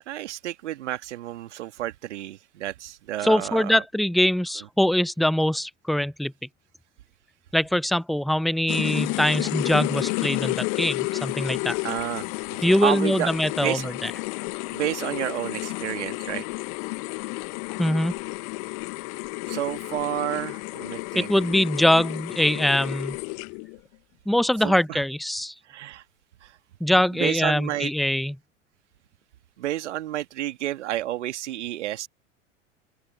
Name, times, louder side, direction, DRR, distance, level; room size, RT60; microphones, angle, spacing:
voice 1, 0.1-3.8 11.8-12.3 12.6-13.3 13.6-13.9 14.7-16.4 19.5-21.3 24.6-25.0 25.7-26.0 26.4-26.5 27.2-27.9 29.6-32.1, right 13 dB, 60° right, 2.1 m, -30 dB
voice 2, 3.2-6.3 7.5-11.8 12.6-14.1 17.8-18.1 21.1-23.2 24.3-25.5 26.8-28.4, left 1 dB, ahead, 0.5 m, -23 dB
sound 1, 8.7-23.8, left 35 dB, 45° left, 1.1 m, -31 dB
open air
figure-of-eight pair, 85°, 39 cm